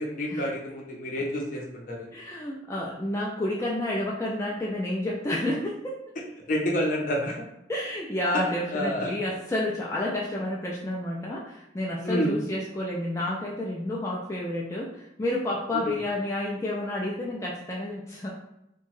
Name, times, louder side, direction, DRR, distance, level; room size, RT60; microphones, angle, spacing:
voice 1, 0.0-2.1 6.5-7.4 8.3-8.4 8.7-9.1 12.0-12.3 15.7-15.9, equal, 50° left, -1 dB, 0.6 m, -28 dB
voice 2, 2.1-6.0 7.7-18.3, left 1 dB, 15° left, -4 dB, 0.3 m, -30 dB
2.8 x 2.2 x 3.0 m, 0.84 s
head